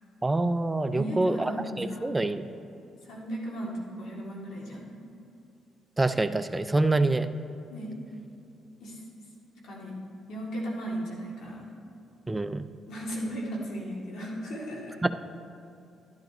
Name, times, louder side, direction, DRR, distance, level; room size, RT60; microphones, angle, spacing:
voice 1, 0.2-1.5 1.8-2.5 6.0-7.3 12.3-12.7 15.0-15.1, right 2 dB, 15° right, 10 dB, 0.5 m, -26 dB
voice 2, 0.9-2.2 3.0-4.9 7.7-7.9 8.8-9.0 9.6-10.0 10.3-11.7 12.9-15.0, equal, 75° left, -4 dB, 2.5 m, -36 dB
11.5 x 11.5 x 3.0 m, 2.7 s
cardioid pair, 90°, 0 cm